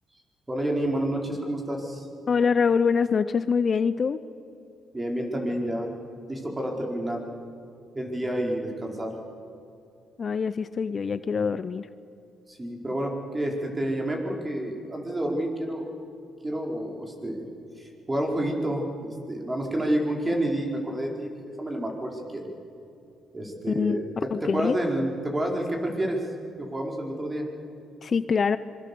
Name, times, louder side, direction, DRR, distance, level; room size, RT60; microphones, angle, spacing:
voice 1, 0.5-2.0 4.9-5.9 6.3-7.2 7.9-9.2 12.5-15.9 16.4-17.5 17.8-21.3 21.6-22.5 23.3-26.2 26.6-27.5, right 1 dB, 20° right, 1 dB, 4.6 m, -29 dB
voice 2, 2.3-4.2 10.2-11.9 23.7-24.9 28.0-28.6, left 5 dB, 45° left, 13 dB, 0.7 m, -24 dB
26.0 x 22.0 x 7.0 m, 2.6 s
cardioid pair, 90°, 0 cm